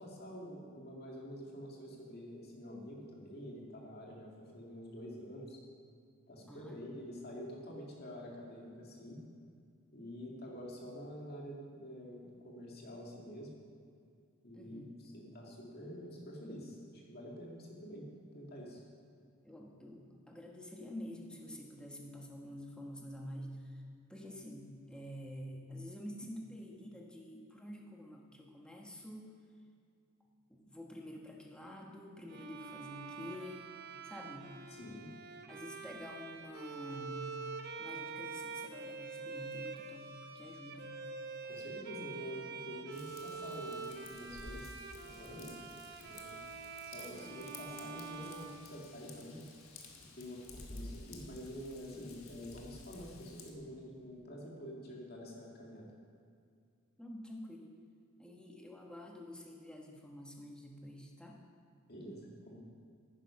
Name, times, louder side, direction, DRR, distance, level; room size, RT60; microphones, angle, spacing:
voice 1, 0.0-5.6 6.3-9.2 9.9-13.5 14.4-18.1 18.3-18.8 34.7-35.1 41.5-45.6 46.0-46.4 46.8-49.5 50.1-55.9 61.9-62.6, equal, 50° left, -2 dB, 2.2 m, -47 dB
voice 2, 6.5-6.9 14.5-14.9 19.2-23.5 24.1-29.3 30.5-33.6 34.0-34.5 35.5-37.2 37.8-40.9 47.2-47.4 57.0-57.7 58.2-61.4, left 1 dB, 5° left, 0 dB, 1.1 m, -48 dB
Bowed string instrument, 32.3-49.3, right 4 dB, 50° right, 0.7 m, -46 dB
Raindrop / Vehicle horn car horn honking / Trickle dribble, 42.9-53.5, left 3 dB, 85° left, 1.4 m, -53 dB
10.0 x 9.9 x 5.7 m, 2.3 s
head